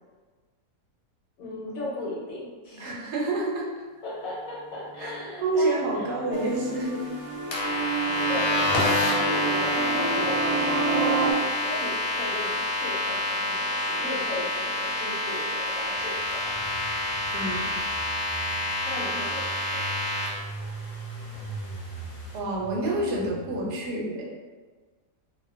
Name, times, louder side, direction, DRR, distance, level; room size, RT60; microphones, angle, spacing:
voice 1, 1.4-3.0 4.0-6.5 8.3-16.5 18.8-19.9, left 2 dB, 65° left, -5 dB, 1.0 m, -37 dB
voice 2, 2.8-3.7 5.0-5.1 5.4-7.0 7.6-7.8 17.3-17.7 22.3-24.3, right 2 dB, 85° right, -2 dB, 1.2 m, -28 dB
sound 1, 5.0-5.3 5.6-11.3, right 4 dB, 10° right, 1.0 m, -29 dB
sound 2, 7.5-20.3, left 2 dB, 85° left, 1.2 m, -28 dB
Engine, 15.8-23.9, right 3 dB, 45° right, 0.8 m, -40 dB
2.6 x 2.1 x 2.4 m, 1.4 s
omnidirectional pair, 1.7 m